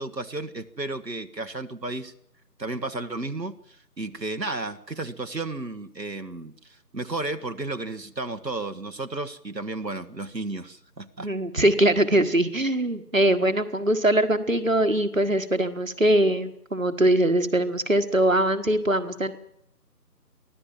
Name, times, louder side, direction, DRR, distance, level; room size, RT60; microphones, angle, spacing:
voice 1, 0.0-2.1 2.6-11.3, right 2 dB, 80° right, 7 dB, 1.5 m, -33 dB
voice 2, 11.2-19.3, right 1 dB, 50° right, 10 dB, 1.6 m, -22 dB
24.0 x 16.0 x 7.5 m, 0.75 s
figure-of-eight pair, 180°, 49 cm